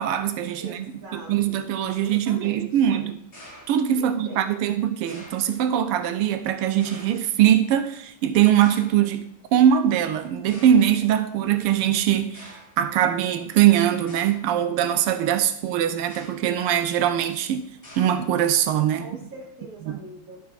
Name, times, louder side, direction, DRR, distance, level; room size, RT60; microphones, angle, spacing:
voice 1, 0.0-0.9 1.1-3.2 3.7-17.7 18.0-19.1 19.8-20.0, right 10 dB, 90° right, 1.6 m, -22 dB
voice 2, 0.6-3.0 3.9-4.5 19.0-20.4, right 1 dB, 40° right, 2.3 m, -42 dB
sound 1, 1.8-2.2 3.3-4.2 5.1-5.6 6.8-7.4 8.6-9.1 9.9-10.0 10.5-11.0 11.8-11.9 12.3-12.8 14.1-14.6 16.0-16.6 17.8-18.5, equal, 30° left, 3.3 m, -46 dB
11.5 x 5.5 x 4.1 m
omnidirectional pair, 2.4 m